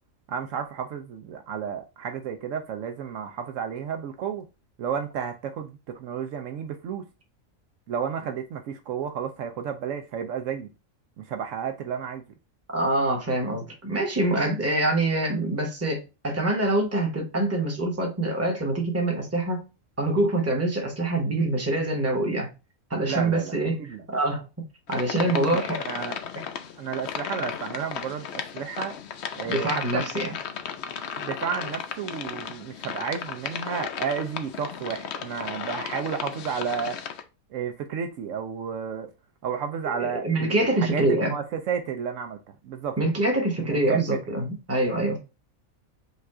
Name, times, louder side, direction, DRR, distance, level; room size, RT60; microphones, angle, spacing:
voice 1, 0.3-4.4 4.8-7.0 7.9-10.7 11.2-12.2 23.1-23.5 23.8-24.0 25.4-26.2 26.8-28.9 29.4-30.1 31.2-37.0 37.5-39.1 39.4-42.4 42.6-43.0 43.6-44.4, right 7 dB, 70° right, 0.9 m, -32 dB
voice 2, 12.7-19.7 20.0-22.5 22.9-23.8 24.1-24.4 24.9-25.8 29.5-30.3 39.9-41.3 43.0-45.2, right 2 dB, 10° right, 1.0 m, -25 dB
sound 1, 24.9-37.2, left 8 dB, 60° left, 0.8 m, -35 dB
5.4 x 2.4 x 3.6 m
omnidirectional pair, 1.4 m